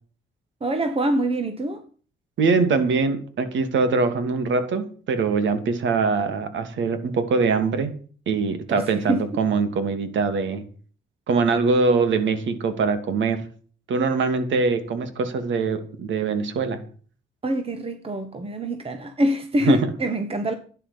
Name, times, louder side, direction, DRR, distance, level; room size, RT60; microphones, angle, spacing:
voice 1, 0.6-1.8 8.7-9.3 17.4-20.5, right 1 dB, 30° right, 1.9 m, -25 dB
voice 2, 2.4-7.9 8.3-10.6 11.3-13.4 13.9-16.8 19.6-19.9, right 4 dB, 70° right, 2.9 m, -23 dB
12.5 x 10.0 x 7.4 m
cardioid pair, 90°, 20 cm